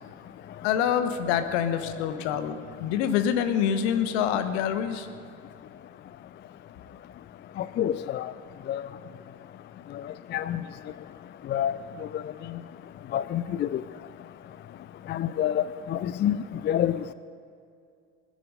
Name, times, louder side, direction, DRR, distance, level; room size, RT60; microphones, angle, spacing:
voice 1, 0.6-5.1, left 8 dB, 65° left, 10 dB, 1.1 m, -26 dB
voice 2, 7.6-8.3 8.7-8.8 10.3-10.6 11.5-11.7 13.1-13.8 15.1-15.6 15.9-16.4 16.6-17.0, left 11 dB, 30° left, 15 dB, 0.4 m, -26 dB
20.0 x 11.0 x 5.4 m, 2.3 s
figure-of-eight pair, 50°, 36 cm